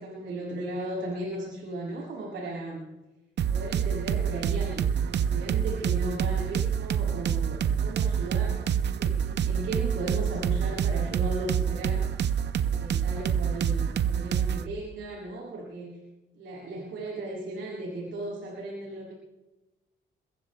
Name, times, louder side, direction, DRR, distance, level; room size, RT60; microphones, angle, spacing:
voice 1, 0.0-2.9 3.5-8.7 9.0-12.2 12.6-16.0 16.3-19.1, right 1 dB, 75° right, -2 dB, 7.0 m, -36 dB
sound 1, 3.4-14.7, right 8 dB, 60° right, 0.8 m, -27 dB
28.5 x 22.0 x 2.3 m, 1.0 s
cardioid pair, 90°, 20 cm